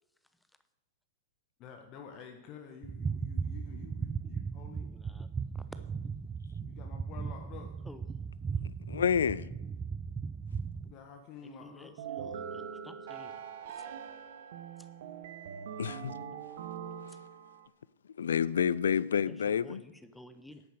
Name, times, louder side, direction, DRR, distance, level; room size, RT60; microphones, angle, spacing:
voice 1, 1.6-4.9 6.6-7.7 9.7-9.9 10.8-12.0, left 6 dB, 35° left, 1.4 m, -50 dB
sound 1, 2.8-10.9, right 5 dB, 15° right, 0.4 m, -37 dB
voice 2, 8.9-9.5 15.8-16.1 18.2-19.8, left 7 dB, 65° left, 0.4 m, -28 dB
voice 3, 11.6-13.3 19.6-20.6, left 1 dB, 5° left, 0.8 m, -52 dB
sound 2, 12.0-17.7, right 7 dB, 55° right, 1.1 m, -42 dB
10.5 x 9.4 x 6.5 m
figure-of-eight pair, 105°, 0 cm